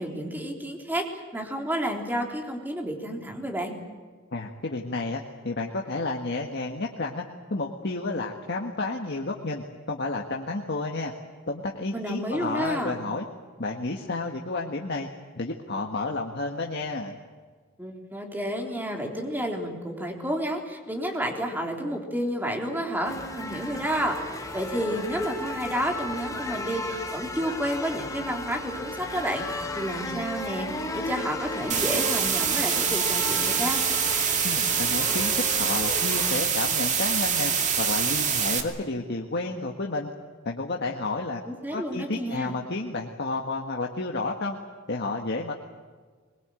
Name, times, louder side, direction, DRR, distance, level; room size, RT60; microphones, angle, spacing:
voice 1, 0.0-3.7 11.9-13.0 17.8-33.8 41.5-42.5, equal, 10° right, 1 dB, 3.5 m, -30 dB
voice 2, 4.3-7.2 7.5-11.1 11.5-13.3 13.6-15.1 15.4-17.1 34.4-35.3 35.6-37.5 37.8-40.1 40.4-41.4 41.7-44.6 44.9-45.5, left 3 dB, 55° left, 1 dB, 1.7 m, -31 dB
sound 1, 23.0-36.3, left 2 dB, 15° left, 2.7 m, -35 dB
sound 2, 31.7-38.6, right 7 dB, 35° right, 2.3 m, -25 dB
22.0 x 22.0 x 9.1 m, 1.5 s
head